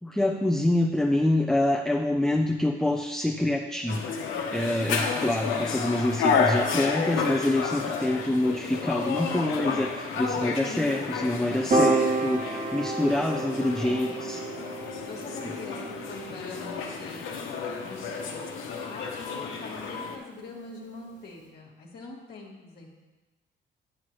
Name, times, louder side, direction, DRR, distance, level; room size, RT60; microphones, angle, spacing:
voice 1, 0.0-4.1 4.5-14.4 15.4-15.5, left 1 dB, ahead, 1 dB, 0.5 m, -26 dB
sound 1, 3.9-20.2, left 5 dB, 85° left, 0.9 m, -31 dB
Piano, 11.7-18.1, right 3 dB, 40° right, 1.2 m, -30 dB
voice 2, 13.4-14.1 15.0-17.5 17.8-18.5 18.8-22.9, left 3 dB, 55° left, -4 dB, 1.4 m, -44 dB
8.1 x 7.6 x 3.2 m, 1.2 s
cardioid pair, 90°, 20 cm